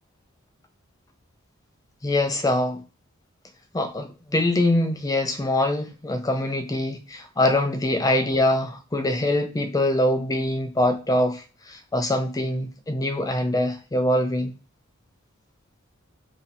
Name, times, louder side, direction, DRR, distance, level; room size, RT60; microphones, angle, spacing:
voice 1, 2.0-2.8 3.7-14.5, left 1 dB, 15° left, 0.5 m, -24 dB
2.8 x 2.7 x 4.1 m
head